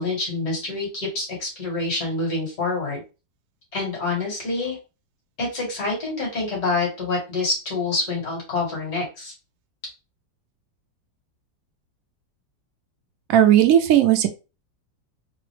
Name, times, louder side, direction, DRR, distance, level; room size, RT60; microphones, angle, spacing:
voice 1, 0.0-3.0 3.7-4.8 5.4-9.3, left 3 dB, 55° left, -2 dB, 2.1 m, -26 dB
voice 2, 13.3-14.3, right 11 dB, 75° right, 7 dB, 0.7 m, -16 dB
3.9 x 2.0 x 3.2 m, 0.30 s
omnidirectional pair, 2.0 m